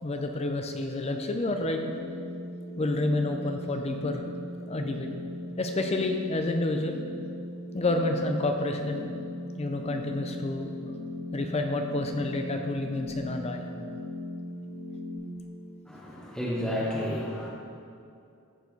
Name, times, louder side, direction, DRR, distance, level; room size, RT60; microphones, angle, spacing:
voice 1, 0.0-1.8 2.8-4.3 4.7-5.1 5.6-7.0 7.7-9.2 9.6-10.7 11.3-13.6, left 2 dB, 30° left, 4 dB, 0.5 m, -29 dB
sound 1, 1.5-15.2, left 1 dB, 65° left, 2.3 m, -39 dB
voice 2, 15.9-17.5, equal, 5° left, -6 dB, 1.1 m, -31 dB
13.5 x 4.6 x 4.6 m, 2.5 s
head